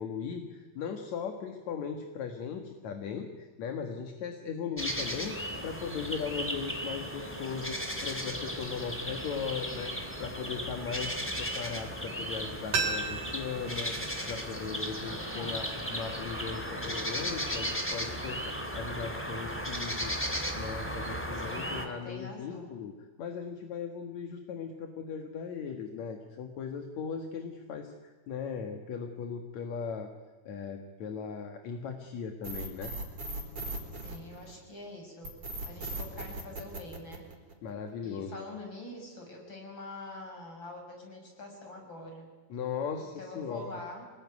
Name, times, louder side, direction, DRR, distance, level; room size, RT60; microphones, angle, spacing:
voice 1, 0.0-15.7 15.9-22.9 23.2-30.1 30.5-32.9 37.6-38.4 42.5-43.8, left 6 dB, 55° left, 5 dB, 2.4 m, -38 dB
sound 1, 4.8-21.9, equal, 5° left, 2.0 m, -36 dB
sound 2, 12.7-15.5 15.8-15.9, right 4 dB, 55° right, 5.4 m, -36 dB
voice 2, 15.0-15.9 21.3-22.7 34.0-35.3 35.7-37.3 38.0-42.3 43.0-44.0, left 2 dB, 30° left, 2 dB, 6.7 m, -45 dB
sound 3, 32.4-34.7 35.2-37.7, right 2 dB, 35° right, 5.0 m, -38 dB
26.0 x 20.0 x 9.7 m, 1.4 s
omnidirectional pair, 4.6 m